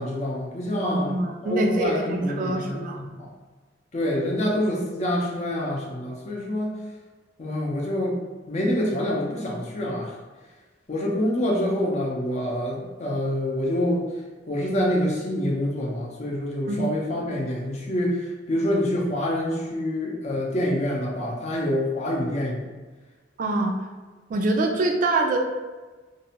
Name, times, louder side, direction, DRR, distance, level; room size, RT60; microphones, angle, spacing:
voice 1, 0.0-3.3 3.9-6.8 7.4-10.1 10.9-14.0 14.5-22.6, left 1 dB, 40° left, -2 dB, 0.5 m, -26 dB
voice 2, 0.8-3.0 16.7-16.9 23.4-23.7 24.3-25.4, right 2 dB, 45° right, 2 dB, 0.3 m, -25 dB
2.6 x 2.1 x 2.8 m, 1.3 s
head